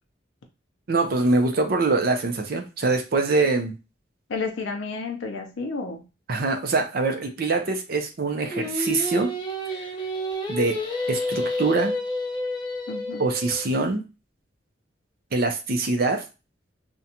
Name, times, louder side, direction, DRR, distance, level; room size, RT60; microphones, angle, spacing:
voice 1, 0.9-3.8 6.3-9.3 9.8-9.9 10.5-10.8 11.1-11.9 13.2-14.0 15.3-16.2, right 3 dB, 50° right, 6 dB, 0.5 m, -24 dB
voice 2, 4.3-6.0 12.9-13.2, left 4 dB, 85° left, 4 dB, 0.5 m, -31 dB
Singing, 8.5-13.6, left 1 dB, 25° left, 0.5 m, -29 dB
2.5 x 2.2 x 2.7 m, 0.30 s
head